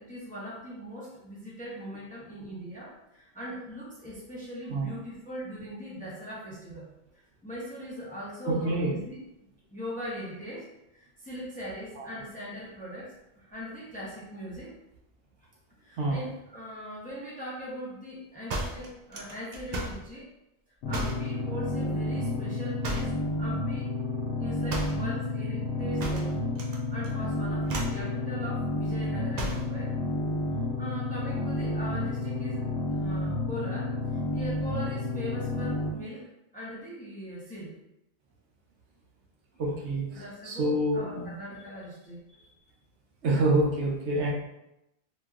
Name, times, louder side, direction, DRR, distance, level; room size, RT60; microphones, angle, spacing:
voice 1, 0.0-6.9 7.4-9.2 9.7-10.7 10.9-14.7 15.8-20.3 20.9-23.9 24.4-26.4 26.6-29.9 30.8-36.2 36.5-37.7 40.1-42.2, equal, 10° left, -7 dB, 0.6 m, -40 dB
voice 2, 8.5-9.0 12.0-12.1 16.0-16.2 39.6-41.3 43.2-44.3, right 1 dB, 80° right, -2 dB, 1.0 m, -27 dB
sound 1, 18.5-20.1 20.9-21.3 22.8-23.3 24.7-25.1 26.0-26.8 27.0-27.3 27.7-28.0 29.3-29.7, right 1 dB, 55° right, 0.4 m, -34 dB
sound 2, 20.8-35.9, left 2 dB, 85° left, 0.9 m, -30 dB
2.9 x 2.8 x 2.4 m, 0.88 s
omnidirectional pair, 1.1 m